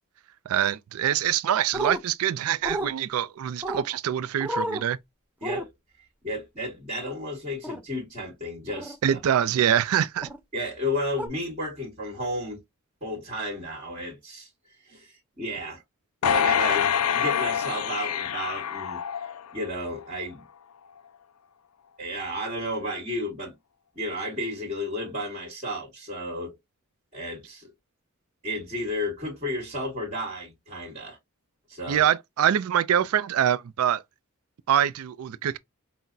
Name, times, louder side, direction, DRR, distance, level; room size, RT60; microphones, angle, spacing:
voice 1, 0.5-5.0 9.0-10.3 31.9-34.0 34.7-35.6, right 10 dB, 80° right, 0.3 m, -24 dB
sound 1, 1.7-2.0 2.6-2.9 3.6-3.9 4.4-4.8 5.4-5.6 7.6-7.8 8.7-9.0 10.2-10.4 11.2-11.3, right 1 dB, 10° right, 0.6 m, -30 dB
voice 2, 6.2-9.4 10.5-12.6 13.0-14.5 14.8-15.8 16.2-19.0 19.5-20.4 22.0-23.6 23.9-26.5 27.1-27.7 28.4-31.2 31.7-32.1, left 1 dB, 35° right, 1.7 m, -32 dB
sound 2, 16.2-19.7 20.2-20.3, left 8 dB, 85° left, 0.4 m, -26 dB
5.8 x 2.1 x 2.6 m
head